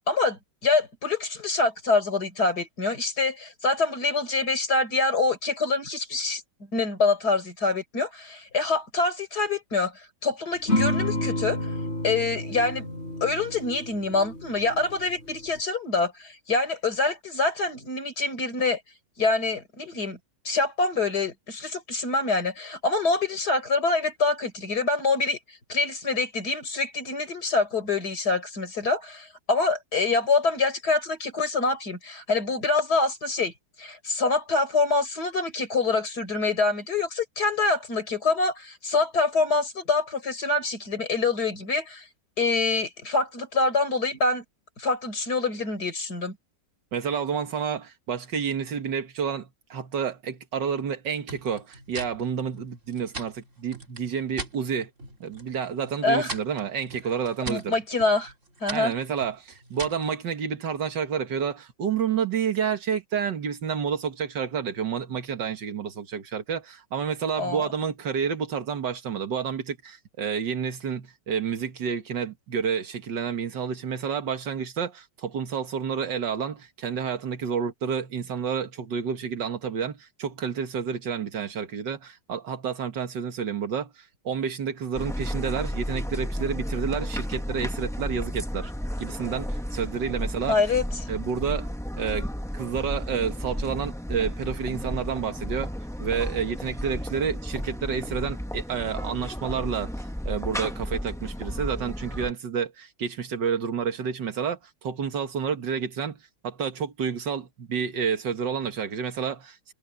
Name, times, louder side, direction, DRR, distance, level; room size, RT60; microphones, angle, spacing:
voice 1, 0.0-6.4 6.7-11.6 12.0-12.9 13.2-18.8 19.2-20.2 20.5-42.1 42.4-44.4 44.8-46.4 56.0-56.4 57.5-58.3 58.6-58.9 67.4-67.7 90.5-90.9, left 3 dB, 60° left, 5.3 m, -25 dB
sound 1, 10.7-15.6, left 1 dB, 35° left, 6.1 m, -30 dB
voice 2, 46.9-54.9 55.2-57.8 58.7-88.7 89.0-90.6 91.1-91.7 92.0-95.7 96.0-106.2 106.4-109.7, right 7 dB, 75° right, 2.3 m, -30 dB
sound 2, 51.3-54.6 55.0-55.5 55.8-60.1, right 3 dB, 40° right, 3.3 m, -40 dB
sound 3, 84.9-102.3, equal, 5° left, 0.5 m, -33 dB
omnidirectional pair, 1.9 m